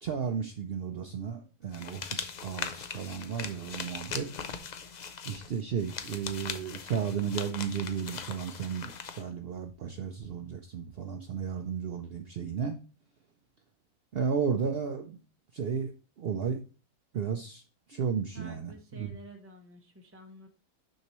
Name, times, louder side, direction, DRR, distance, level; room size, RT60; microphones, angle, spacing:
voice 1, 0.0-4.3 5.2-12.8 14.1-15.2 15.5-16.6 17.1-17.6 17.9-19.2, right 6 dB, 60° right, 5 dB, 0.7 m, -33 dB
sound 1, 1.7-9.2, left 6 dB, 55° left, 0.5 m, -40 dB
voice 2, 18.3-20.5, right 1 dB, 15° right, 3 dB, 0.5 m, -50 dB
6.6 x 5.5 x 3.0 m, 0.34 s
omnidirectional pair, 1.4 m